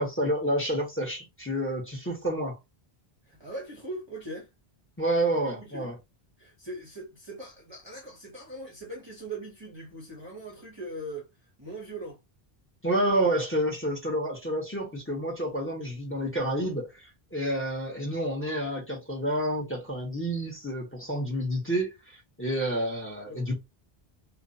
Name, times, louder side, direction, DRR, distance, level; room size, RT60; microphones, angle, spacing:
voice 1, 0.0-2.6 5.0-6.0 12.8-23.5, right 1 dB, 15° left, 1.0 m, -29 dB
voice 2, 3.3-4.5 5.6-5.9 6.4-12.2 23.3-23.5, right 1 dB, 30° right, 0.8 m, -40 dB
2.6 x 2.2 x 2.6 m
omnidirectional pair, 1.1 m